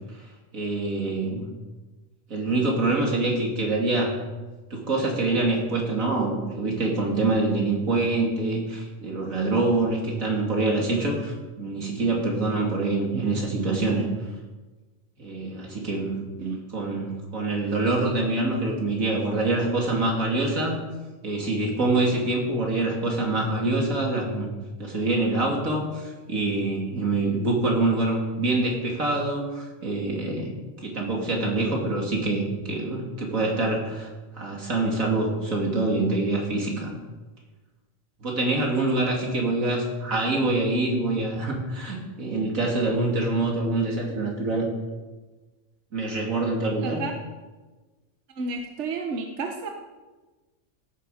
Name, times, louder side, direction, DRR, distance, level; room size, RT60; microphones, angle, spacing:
voice 1, 0.5-1.4 2.3-4.2 4.7-14.1 15.2-16.1 16.7-20.8 21.2-24.5 24.8-30.5 30.8-34.1 34.3-36.9 38.2-44.7 45.9-47.0, right 2 dB, 85° right, -1 dB, 3.2 m, -25 dB
voice 2, 46.8-47.1 48.4-49.7, right 4 dB, 60° right, 4 dB, 1.4 m, -31 dB
16.5 x 9.7 x 5.0 m, 1.2 s
omnidirectional pair, 1.4 m